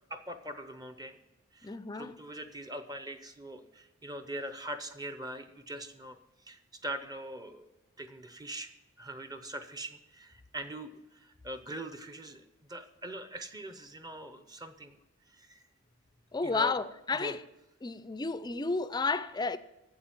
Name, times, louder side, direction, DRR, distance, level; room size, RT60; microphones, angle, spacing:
voice 1, 0.1-1.2 1.5-6.2 6.5-7.6 8.0-8.7 9.0-12.4 12.7-15.0 15.3-15.6 16.4-16.8 17.1-17.4, right 1 dB, 20° right, 0.7 m, -42 dB
voice 2, 1.6-2.1 16.3-17.4 17.8-19.6, left 4 dB, 20° left, 0.4 m, -32 dB
8.7 x 7.8 x 9.1 m
head